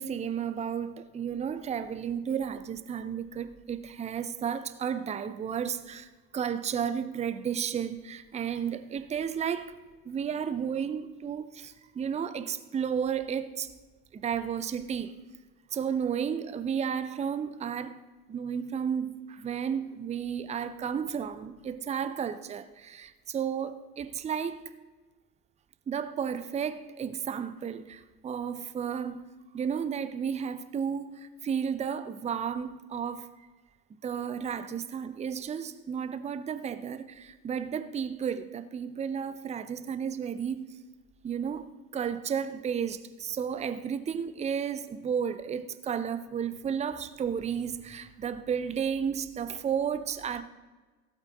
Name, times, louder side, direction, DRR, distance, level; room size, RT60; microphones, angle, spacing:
voice 1, 0.0-9.8 10.0-13.7 14.1-15.2 15.7-18.0 18.3-24.7 25.9-29.2 29.5-33.3 34.0-40.7 41.2-50.4, right 7 dB, 15° right, 0.6 m, -33 dB
16.5 x 8.1 x 3.9 m
figure-of-eight pair, 70°, 46 cm